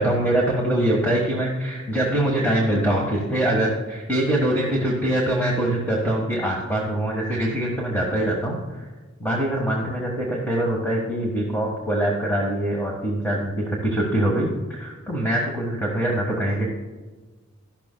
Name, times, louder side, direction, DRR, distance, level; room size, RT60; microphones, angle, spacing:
voice 1, 0.0-8.8 9.2-16.7, right 1 dB, 10° left, -3 dB, 1.5 m, -23 dB
13.5 x 12.0 x 2.3 m, 1.3 s
head